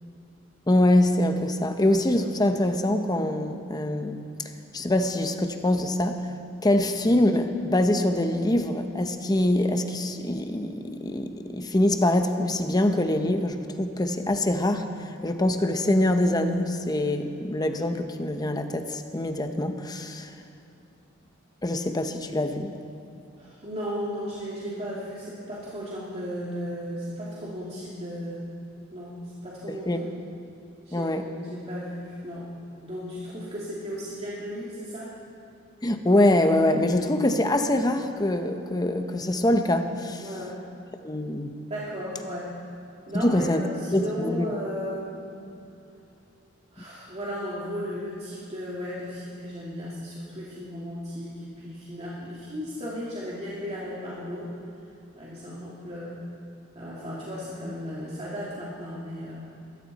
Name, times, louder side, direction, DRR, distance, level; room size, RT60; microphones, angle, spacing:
voice 1, 0.7-4.2 4.7-6.2 6.6-14.9 15.2-20.3 21.6-22.7 29.7-30.0 30.9-31.3 35.8-40.3 41.0-41.5 43.1-43.6 43.9-44.4, left 1 dB, 20° left, 6 dB, 0.8 m, -24 dB
voice 2, 23.4-28.5 28.9-29.9 30.9-32.5 32.8-35.1 40.2-40.6 41.7-42.5 43.1-45.3 46.7-54.5 55.1-56.2 56.7-59.5, equal, 35° right, -7 dB, 2.4 m, -35 dB
22.0 x 14.0 x 4.2 m, 2.7 s
head